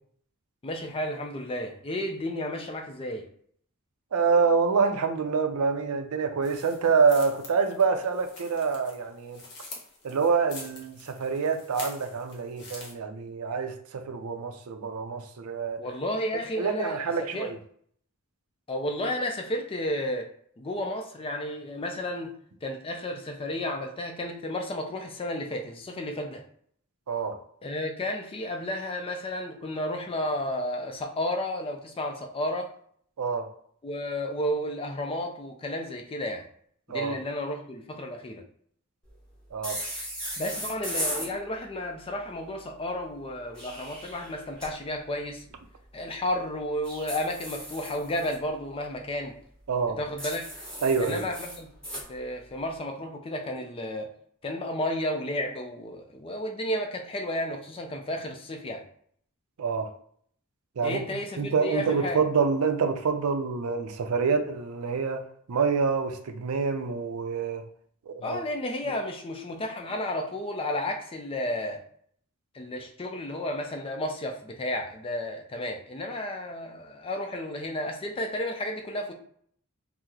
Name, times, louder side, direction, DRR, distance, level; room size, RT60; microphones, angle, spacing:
voice 1, 0.6-3.2 15.8-17.5 18.7-20.3 20.6-22.3 22.6-26.4 27.6-32.7 33.8-36.4 36.9-38.4 40.4-45.4 45.9-49.4 50.0-50.5 51.0-51.7 52.1-54.1 54.4-58.8 60.8-62.2 68.2-71.8 72.5-79.1, left 1 dB, 25° left, 3 dB, 0.4 m, -32 dB
voice 2, 4.1-9.4 10.0-15.8 16.6-17.6 27.1-27.4 33.2-33.5 36.9-37.2 39.5-39.8 49.7-50.0 50.8-51.2 59.6-59.9 60.8-61.0 61.4-65.2 65.5-67.6 68.1-68.4, right 5 dB, 85° right, 7 dB, 0.5 m, -26 dB
sound 1, 6.4-12.9, left 2 dB, 55° left, 0.9 m, -45 dB
sound 2, 39.6-41.3 43.3-44.7 46.8-48.3 50.2-52.1, equal, 5° left, 1.2 m, -36 dB
2.9 x 2.0 x 3.6 m, 0.62 s
head